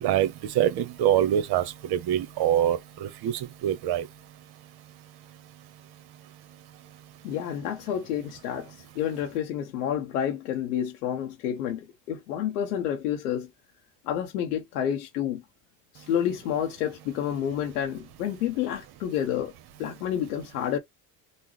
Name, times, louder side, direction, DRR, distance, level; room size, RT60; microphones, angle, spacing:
voice 1, 0.0-1.6 1.9-4.1, right 11 dB, 60° right, 0.8 m, -25 dB
voice 2, 7.2-13.5 14.0-15.4 15.9-19.5 19.8-20.8, left 9 dB, 90° left, 0.7 m, -29 dB
3.8 x 2.0 x 3.0 m
hypercardioid pair, 65°, 45 cm